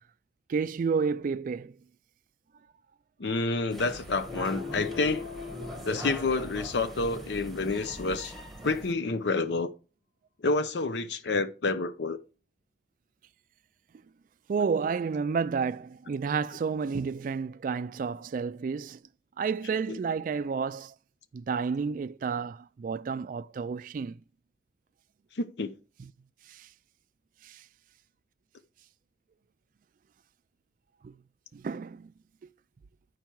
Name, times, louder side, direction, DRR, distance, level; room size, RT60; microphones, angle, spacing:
voice 1, 0.5-1.8 14.5-19.0 19.4-20.9 21.3-24.1 26.0-26.1 26.5-26.7 27.4-27.6 31.0-31.2 31.5-32.1, right 5 dB, 45° right, 0.3 m, -31 dB
voice 2, 3.2-5.2 5.8-8.3 8.6-9.7 10.4-12.2 25.3-25.7, left 3 dB, 65° left, 0.6 m, -28 dB
sound 1, 3.7-8.9, right 1 dB, ahead, 1.1 m, -42 dB
sound 2, 4.2-6.9, left 5 dB, 80° left, 2.4 m, -41 dB
10.5 x 4.6 x 4.6 m
head